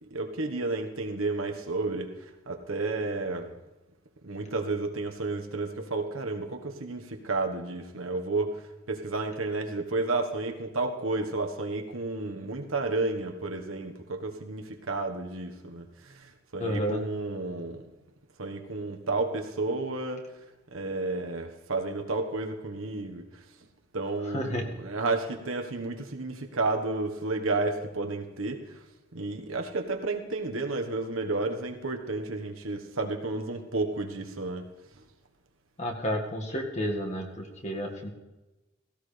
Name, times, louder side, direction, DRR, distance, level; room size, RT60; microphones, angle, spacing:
voice 1, 0.0-3.5 4.2-17.8 18.4-20.3 20.7-23.4 23.9-28.8 29.1-34.7 34.9-35.0, right 3 dB, 85° right, 4 dB, 1.4 m, -32 dB
voice 2, 16.6-17.0 24.3-24.6 35.8-38.1, equal, 35° left, 1 dB, 1.8 m, -31 dB
17.0 x 16.5 x 3.4 m, 1.1 s
head